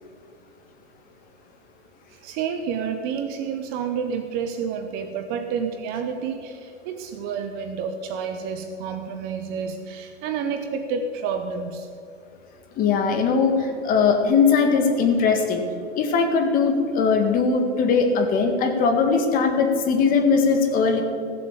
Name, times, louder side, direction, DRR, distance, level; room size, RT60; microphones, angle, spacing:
voice 1, 2.1-11.9, right 6 dB, 30° right, 7 dB, 0.8 m, -29 dB
voice 2, 12.8-15.6 16.0-21.0, left 5 dB, 25° left, 4 dB, 1.8 m, -20 dB
17.0 x 7.5 x 7.3 m, 2.5 s
hypercardioid pair, 140°, 35 cm